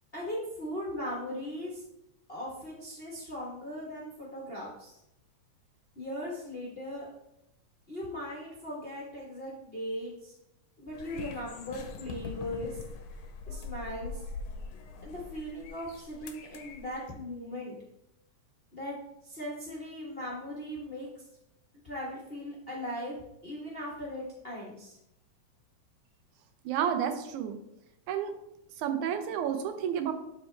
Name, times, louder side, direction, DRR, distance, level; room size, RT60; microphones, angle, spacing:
voice 1, 0.1-1.8 2.3-4.9 5.9-7.1 7.9-10.3 10.8-12.8 13.5-14.2 15.0-17.7 18.7-19.0 19.2-21.2 21.8-23.2 23.4-25.0, left 1 dB, 40° left, -5 dB, 0.9 m, -38 dB
sound 1, 10.9-17.1, left 4 dB, 70° left, 1.7 m, -43 dB
voice 2, 26.7-27.6 28.1-28.3 28.8-30.1, right 8 dB, 85° right, 8 dB, 2.2 m, -30 dB
11.0 x 4.2 x 3.3 m, 0.85 s
omnidirectional pair, 3.4 m